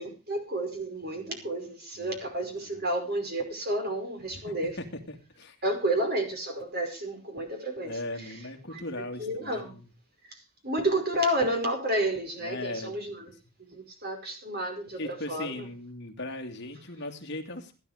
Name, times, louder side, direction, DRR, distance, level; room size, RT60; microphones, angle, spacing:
voice 1, 0.0-4.7 5.6-8.0 8.3-8.4 8.7-8.8 9.2-9.8 10.3-10.4 10.6-13.3 13.6-15.6, right 1 dB, 45° right, 4 dB, 5.2 m, -31 dB
voice 2, 2.4-2.8 4.3-5.6 7.8-9.9 12.4-12.9 15.0-17.7, left 1 dB, 50° left, 4 dB, 2.6 m, -39 dB
16.0 x 11.0 x 5.0 m, 0.32 s
head